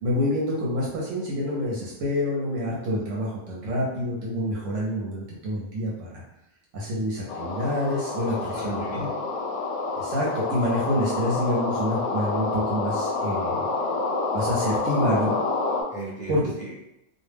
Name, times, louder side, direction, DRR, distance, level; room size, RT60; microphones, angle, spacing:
voice 1, 0.0-6.2 6.7-9.1 9.9-13.7 14.3-15.4 16.3-16.4, left 1 dB, 75° right, -5 dB, 1.0 m, -27 dB
sound 1, 7.3-15.8, left 3 dB, 75° left, 0.9 m, -28 dB
voice 2, 8.2-9.1 15.9-16.7, right 2 dB, 10° left, -8 dB, 0.6 m, -37 dB
2.3 x 2.1 x 3.2 m, 0.85 s
omnidirectional pair, 1.3 m